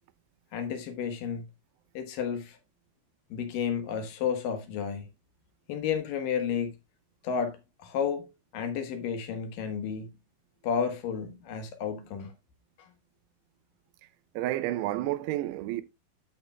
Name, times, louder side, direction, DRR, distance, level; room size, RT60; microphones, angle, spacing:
voice 1, 0.5-1.4 1.9-2.6 3.3-5.1 5.7-6.7 7.2-8.3 8.5-10.1 10.6-12.3 12.8-12.9, left 7 dB, 65° left, 2.7 m, -32 dB
voice 2, 14.4-15.8, right 15 dB, 90° right, 2.6 m, -30 dB
12.5 x 6.7 x 2.2 m
omnidirectional pair, 4.6 m